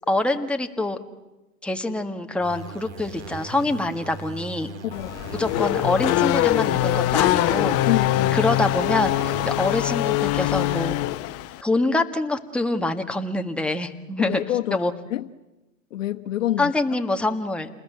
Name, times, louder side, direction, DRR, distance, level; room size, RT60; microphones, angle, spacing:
voice 1, 0.1-1.0 1.6-4.7 5.3-7.8 8.3-11.0 11.6-14.4 14.7-14.9 16.6-17.7, left 2 dB, 5° left, 1.7 m, -25 dB
sound 1, 2.4-9.8, right 4 dB, 60° right, 4.8 m, -39 dB
Race car auto racing / Accelerating revving vroom, 4.9-11.6, left 15 dB, 35° left, 1.1 m, -23 dB
voice 2, 7.9-8.5 14.2-15.3 15.9-16.7, left 13 dB, 65° left, 1.3 m, -27 dB
29.0 x 20.5 x 9.3 m
hypercardioid pair, 110°, 41 cm